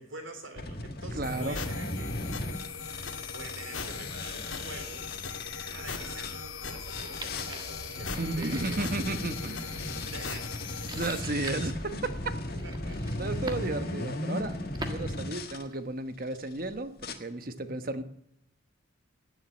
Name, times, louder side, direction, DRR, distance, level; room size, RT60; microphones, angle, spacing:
voice 1, 0.0-2.1 3.3-5.5 5.7-8.8 10.0-10.5 12.6-13.4, right 2 dB, 65° right, 5 dB, 3.7 m, -46 dB
sound 1, 0.6-6.4 6.8-15.6 16.3-16.6 17.0-17.1, left 2 dB, 50° left, 1.6 m, -37 dB
sound 2, 1.2-11.2, left 5 dB, 75° left, 2.1 m, -39 dB
voice 2, 1.2-1.6 8.2-9.8 10.9-12.1 13.2-14.6 14.9-18.0, right 2 dB, 45° right, 10 dB, 1.1 m, -33 dB
sound 3, 6.9-15.9, right 2 dB, 20° right, 1.5 m, -46 dB
17.5 x 7.6 x 9.5 m, 0.81 s
head